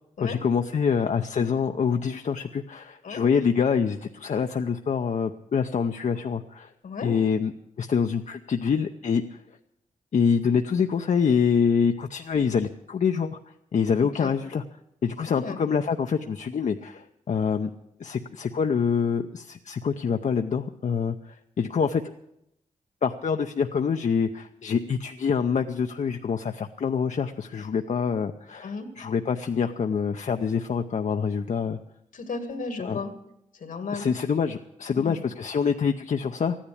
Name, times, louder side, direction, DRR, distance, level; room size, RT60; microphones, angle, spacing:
voice 1, 0.2-6.7 7.0-7.5 7.8-9.4 10.1-13.4 13.7-14.6 15.0-17.7 18.0-22.0 23.0-31.8 32.8-33.0 33.9-36.6, left 6 dB, 65° left, 5 dB, 0.7 m, -26 dB
voice 2, 14.0-14.3 15.4-15.6 28.6-28.9 32.1-33.1 33.5-34.1 34.9-35.2, left 4 dB, 85° left, 6 dB, 2.2 m, -34 dB
14.5 x 10.0 x 8.4 m, 0.81 s
cardioid pair, 65°, 14 cm